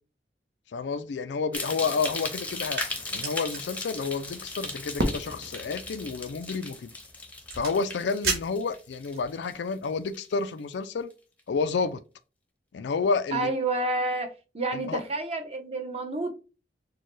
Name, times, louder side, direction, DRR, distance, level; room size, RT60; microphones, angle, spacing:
voice 1, 0.7-2.8 3.1-6.9 7.5-11.1 11.5-12.0 12.7-13.5 14.9-15.0, left 4 dB, 85° left, 0.4 m, -30 dB
sound 1, 1.5-9.9 10.1-10.6 11.1-11.2, left 2 dB, 10° left, 0.7 m, -37 dB
sound 2, 2.0-9.3, right 4 dB, 60° right, 2.2 m, -39 dB
Fireworks, 5.0-7.2, equal, 85° right, 0.8 m, -34 dB
voice 2, 13.3-16.3, right 2 dB, 35° right, 0.8 m, -29 dB
6.5 x 2.2 x 3.1 m
head